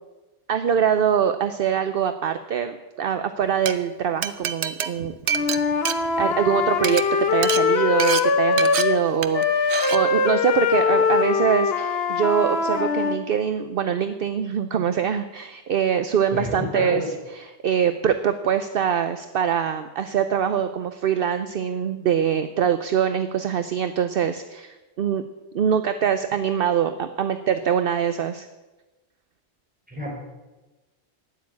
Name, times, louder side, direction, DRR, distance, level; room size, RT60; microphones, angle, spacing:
voice 1, 0.5-5.1 6.2-17.0 17.4-25.2 25.5-28.5, right 8 dB, 60° right, 10 dB, 0.8 m, -23 dB
Glass, 3.4-3.7 4.2-6.5 6.8-7.0 7.4-7.6 8.0-8.2 8.6-8.8 9.2-9.4 9.7-10.0, right 8 dB, 85° right, 1.0 m, -26 dB
Wind instrument woodwind instrument, 5.3-9.0 9.3-13.2, left 5 dB, 65° left, 1.3 m, -22 dB
voice 2, 16.3-17.0 29.9-30.1, left 2 dB, 10° right, -4 dB, 5.4 m, -29 dB
13.0 x 9.6 x 8.5 m, 1.1 s
omnidirectional pair, 1.1 m